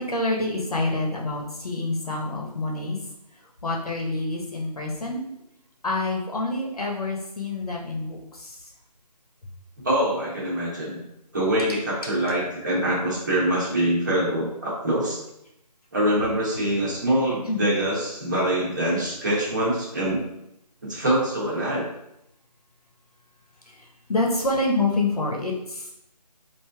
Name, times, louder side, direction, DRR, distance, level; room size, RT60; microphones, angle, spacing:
voice 1, 0.0-3.0 3.6-5.2 5.8-8.6 17.5-17.7 23.7-25.9, left 2 dB, 60° left, -1 dB, 0.8 m, -27 dB
voice 2, 9.8-11.0 11.3-15.2 15.9-20.2 20.8-21.8, right 1 dB, 30° right, -5 dB, 0.9 m, -24 dB
4.8 x 2.6 x 2.2 m, 0.81 s
figure-of-eight pair, 165°, 21 cm